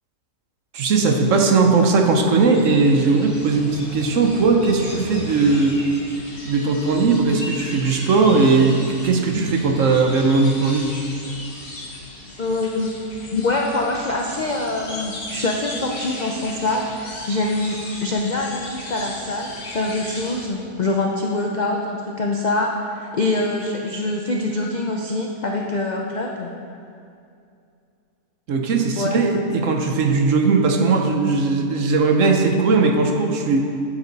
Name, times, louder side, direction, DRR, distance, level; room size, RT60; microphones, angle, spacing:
voice 1, 0.7-5.8 6.5-10.9 28.5-33.6, right 4 dB, 60° right, 3 dB, 1.1 m, -18 dB
sound 1, 2.1-6.4, left 2 dB, 80° left, 1.9 m, -41 dB
sound 2, 2.5-20.5, left 1 dB, 40° left, 1.3 m, -36 dB
voice 2, 12.4-12.9 13.3-26.5 29.0-29.2, left 2 dB, 60° left, 0 dB, 0.4 m, -24 dB
8.8 x 8.8 x 4.0 m, 2.5 s
omnidirectional pair, 1.6 m